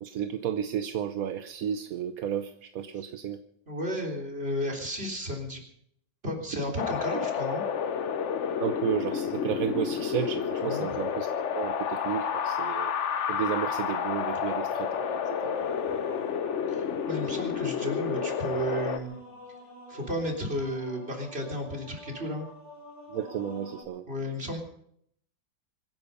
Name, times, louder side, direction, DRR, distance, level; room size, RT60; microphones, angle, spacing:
voice 1, 0.0-3.4 8.6-12.9 13.3-15.7 23.1-24.0, right 9 dB, 60° right, 10 dB, 1.0 m, -32 dB
voice 2, 3.7-5.6 6.2-7.6 10.6-11.0 16.7-19.2 19.9-22.5 24.1-24.6, equal, 30° right, 1 dB, 3.8 m, -33 dB
Wind, 6.8-19.0, left 7 dB, 50° left, 0.9 m, -30 dB
sound 1, 15.5-23.8, left 1 dB, 35° left, 3.7 m, -48 dB
25.0 x 10.5 x 5.4 m, 0.69 s
omnidirectional pair, 2.0 m